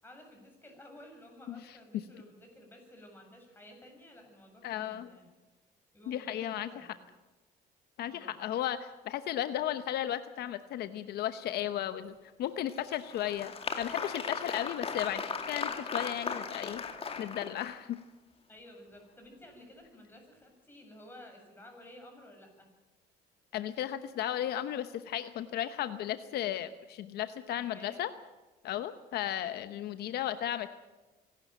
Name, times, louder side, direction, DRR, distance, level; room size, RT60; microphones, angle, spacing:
voice 1, 0.0-5.3 5.9-7.0 8.0-8.4 18.5-22.7 27.7-28.0, left 1 dB, 10° left, 2 dB, 7.4 m, -53 dB
voice 2, 4.6-5.1 6.1-6.7 8.0-16.8 17.2-18.0 23.5-28.1 28.6-30.7, left 11 dB, 70° left, 11 dB, 0.9 m, -35 dB
Applause, 12.7-18.0, left 5 dB, 35° left, 2.3 m, -37 dB
25.0 x 12.0 x 9.1 m, 1.2 s
cardioid pair, 110°, 17 cm